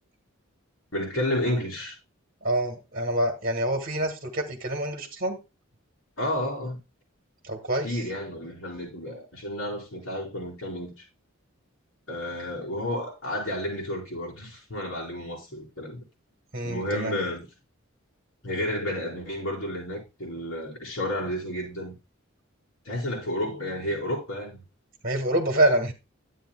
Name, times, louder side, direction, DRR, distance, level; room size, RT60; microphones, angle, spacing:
voice 1, 0.9-2.0 6.2-6.8 7.8-11.0 12.1-16.0 16.6-17.5 18.4-21.9 22.8-24.6, left 1 dB, 75° left, 4.6 m, -31 dB
voice 2, 2.4-5.4 7.4-7.9 16.5-17.1 25.0-25.9, right 1 dB, 45° right, 1.4 m, -26 dB
10.5 x 8.3 x 2.3 m
head